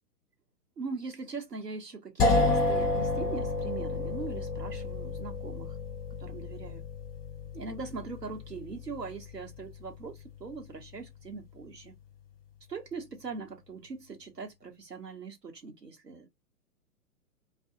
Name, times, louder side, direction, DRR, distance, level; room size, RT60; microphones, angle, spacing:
voice 1, 0.8-5.8 6.2-6.8 7.5-12.0 12.7-16.3, right 4 dB, 80° right, 1.3 m, -41 dB
sound 1, 2.2-12.0, left 2 dB, 10° left, 0.6 m, -32 dB
2.5 x 2.3 x 2.7 m
figure-of-eight pair, 115°, 47 cm